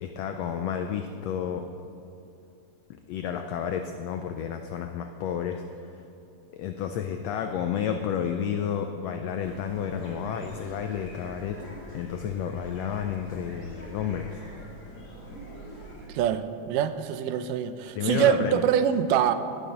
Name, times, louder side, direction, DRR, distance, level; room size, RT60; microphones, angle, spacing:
voice 1, 0.0-1.7 3.1-6.0 6.5-11.6 11.9-14.4 18.0-18.6, left 8 dB, 90° left, 6 dB, 1.4 m, -31 dB
sound 1, 9.4-16.1, equal, 25° left, 2.3 m, -43 dB
voice 2, 16.1-19.3, right 9 dB, 90° right, 11 dB, 2.2 m, -24 dB
18.0 x 6.8 x 5.6 m, 2.8 s
omnidirectional pair, 3.7 m